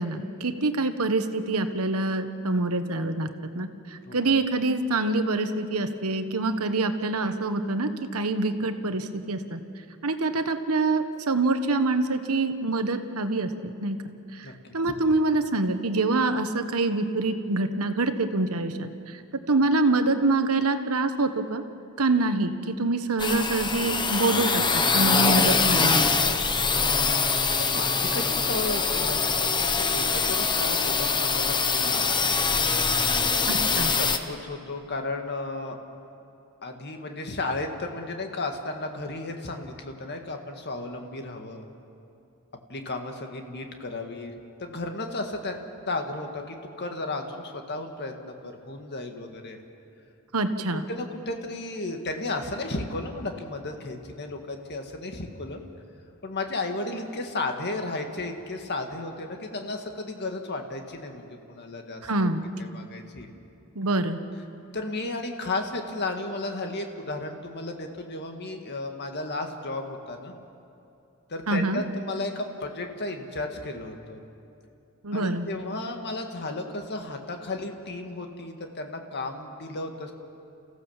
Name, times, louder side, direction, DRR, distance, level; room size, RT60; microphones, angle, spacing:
voice 1, 0.0-3.3 3.5-3.7 4.1-9.6 10.0-14.0 14.7-18.9 19.5-21.6 22.0-26.0 33.5-33.9 50.3-50.8 62.0-62.4 63.8-64.2 71.5-71.8 75.0-75.5, right 2 dB, 75° right, 9 dB, 1.2 m, -25 dB
sound 1, 23.2-34.2, left 4 dB, 20° left, 1.0 m, -24 dB
voice 2, 27.7-32.4 33.4-35.8 36.6-41.6 42.7-44.3 44.6-45.6 45.9-49.6 50.7-55.6 56.2-62.3 62.6-63.3 64.7-70.4 71.3-74.2 75.1-80.1, left 2 dB, 50° left, 4 dB, 1.9 m, -34 dB
30.0 x 15.5 x 7.2 m, 2.7 s
head